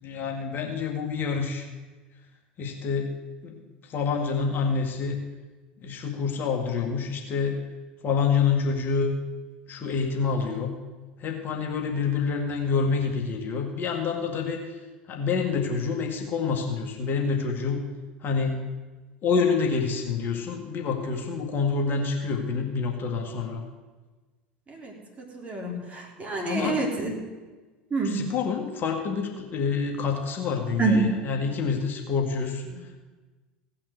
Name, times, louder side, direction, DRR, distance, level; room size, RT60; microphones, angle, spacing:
voice 1, 0.0-1.7 2.6-3.1 3.4-3.6 3.9-5.2 5.8-7.6 8.0-9.1 9.7-10.7 11.2-14.7 15.1-17.8 18.2-18.6 19.2-23.6 26.4-26.8 28.0-32.7, left 5 dB, 40° left, 2 dB, 1.8 m, -27 dB
voice 2, 24.7-27.2 27.9-28.2 30.8-31.0, right 3 dB, 25° right, -1 dB, 3.8 m, -27 dB
17.0 x 5.8 x 8.1 m, 1.3 s
hypercardioid pair, 80°, 5 cm